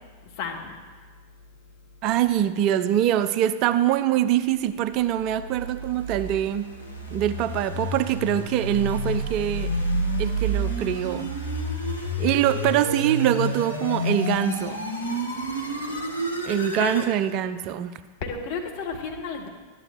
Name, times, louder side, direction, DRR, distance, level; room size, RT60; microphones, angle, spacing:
voice 1, 0.2-0.8 16.7-17.1 18.2-19.5, left 5 dB, 50° left, 2 dB, 1.4 m, -32 dB
voice 2, 2.0-6.7 7.1-9.7 10.2-11.3 12.2-14.8 16.5-18.0, right 11 dB, 40° right, 13 dB, 0.4 m, -24 dB
sound 1, 4.9-17.1, right 1 dB, 85° left, 1.2 m, -29 dB
12.5 x 9.8 x 3.1 m, 1.5 s
figure-of-eight pair, 90°, 0 cm